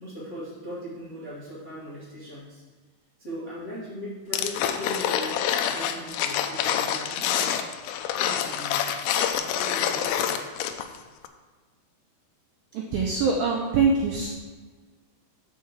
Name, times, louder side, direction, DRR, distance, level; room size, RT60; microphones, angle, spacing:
voice 1, 0.0-2.6 3.2-7.8 8.1-8.8 9.3-10.4, equal, 40° left, -9 dB, 1.0 m, -39 dB
sound 1, 4.3-11.0 11.2-11.3, left 9 dB, 85° left, 2.4 m, -27 dB
voice 2, 12.7-14.3, right 4 dB, 85° right, -1 dB, 2.1 m, -23 dB
6.2 x 5.6 x 7.2 m, 1.4 s
omnidirectional pair, 5.1 m